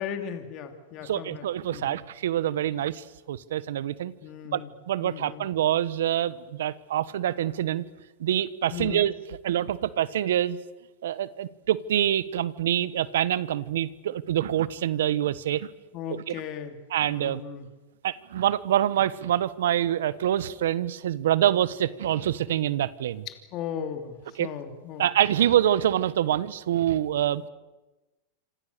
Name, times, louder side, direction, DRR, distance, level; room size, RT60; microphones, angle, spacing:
voice 1, 0.0-2.0 4.2-4.7 5.0-5.5 8.7-9.0 15.9-16.7 17.1-17.7 23.5-25.0, left 8 dB, 45° left, 6 dB, 3.0 m, -36 dB
voice 2, 1.0-4.1 4.5-7.8 8.2-10.6 11.0-15.7 16.1-16.4 16.9-17.4 18.0-23.3 24.4-24.5 25.0-27.5, right 11 dB, 80° right, 17 dB, 1.2 m, -26 dB
27.5 x 26.5 x 6.8 m, 1.1 s
hypercardioid pair, 125°, 0 cm